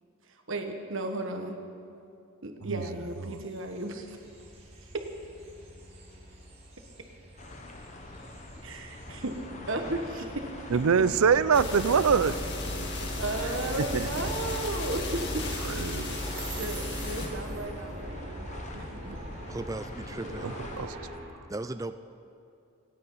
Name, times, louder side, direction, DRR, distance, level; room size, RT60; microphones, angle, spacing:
voice 1, 0.5-1.6 2.4-4.2 4.9-5.0 8.6-9.4 9.7-10.5 10.9-11.0 13.2-15.9 16.6-18.5 18.7-19.2, right 2 dB, 60° right, 1.4 m, -34 dB
sound 1, 2.9-21.2, right 1 dB, 30° right, 4.1 m, -43 dB
sound 2, 7.4-20.9, left 2 dB, 30° left, 0.9 m, -44 dB
voice 2, 10.7-12.3 12.6-13.1 13.9-14.1 15.7-16.2 20.4-21.0, right 6 dB, 80° right, 0.5 m, -25 dB
sound 3, 11.5-17.3, left 2 dB, 50° left, 1.9 m, -35 dB
voice 3, 19.5-20.6 21.5-22.0, right 2 dB, 15° right, 0.4 m, -37 dB
27.0 x 9.4 x 5.6 m
head